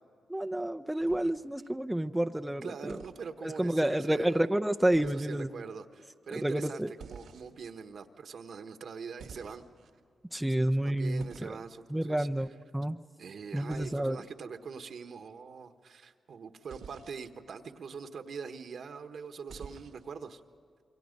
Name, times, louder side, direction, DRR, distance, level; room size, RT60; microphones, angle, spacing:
voice 1, 0.3-3.0 3.4-5.5 6.3-6.9 10.3-11.5 11.9-13.0 13.5-14.2, right 1 dB, 10° right, 6 dB, 0.6 m, -29 dB
sound 1, 1.0-1.7 2.9-3.2 4.9-5.3 7.0-7.7 9.2-9.9 11.2-11.5 13.7-14.0 16.7-17.2 19.5-20.1, right 6 dB, 90° right, 1.8 m, -49 dB
voice 2, 2.6-4.4 5.0-9.6 10.8-12.3 13.2-20.4, right 5 dB, 70° right, 7 dB, 1.3 m, -43 dB
27.5 x 23.5 x 5.3 m, 2.4 s
cardioid pair, 75°, 0 cm